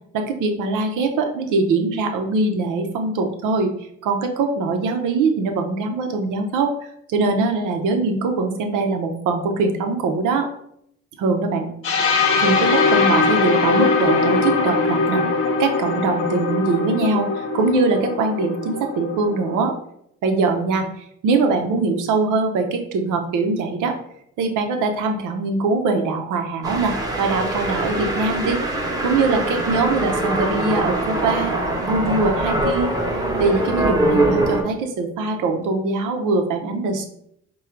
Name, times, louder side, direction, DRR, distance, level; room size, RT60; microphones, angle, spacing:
voice 1, 0.1-3.7 4.0-10.5 11.2-11.7 12.4-19.7 20.2-24.0 24.4-28.6 29.0-31.5 31.8-33.0 33.4-37.1, right 3 dB, 90° right, 5 dB, 0.7 m, -22 dB
sound 1, 11.8-19.7, left 4 dB, 45° left, 0.7 m, -21 dB
sound 2, 26.6-34.6, right 1 dB, 10° right, 0.8 m, -23 dB
3.7 x 2.3 x 4.4 m, 0.72 s
cardioid pair, 90°, 30 cm